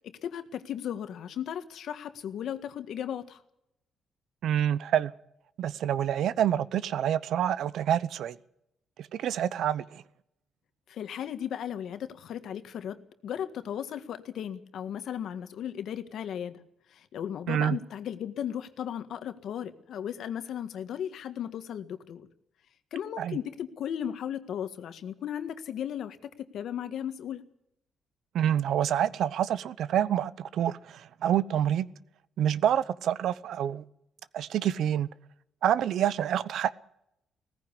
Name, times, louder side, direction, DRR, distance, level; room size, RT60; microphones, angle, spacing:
voice 1, 0.0-3.4 10.9-16.6 16.9-22.3 22.9-27.4, left 9 dB, 70° left, 1.7 m, -36 dB
voice 2, 4.4-5.1 5.6-8.4 9.0-10.0 17.5-17.8 23.2-23.4 28.3-31.9 32.4-33.8 34.3-35.1 35.6-36.7, right 10 dB, 75° right, 0.8 m, -27 dB
18.0 x 15.0 x 9.9 m
cardioid pair, 90°, 0 cm